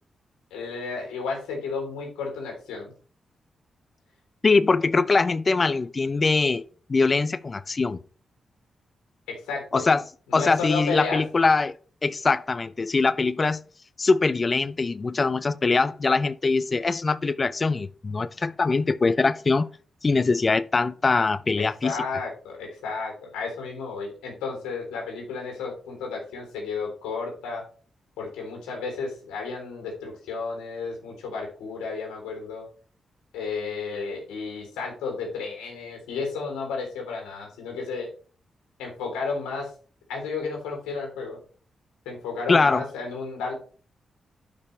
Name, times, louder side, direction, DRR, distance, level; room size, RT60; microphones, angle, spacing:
voice 1, 0.5-2.9 9.3-9.8 10.3-11.2 21.6-27.6 28.2-32.7 33.3-38.1 38.8-39.7 40.1-41.4 42.1-43.5, left 4 dB, 90° left, 3.4 m, -32 dB
voice 2, 4.4-6.6 6.9-8.0 9.7-10.0 10.3-11.7 12.0-13.6 14.0-19.7 20.0-22.0 42.5-42.8, left 4 dB, 45° left, 0.6 m, -22 dB
12.0 x 5.2 x 3.3 m
supercardioid pair, 45°, 0 cm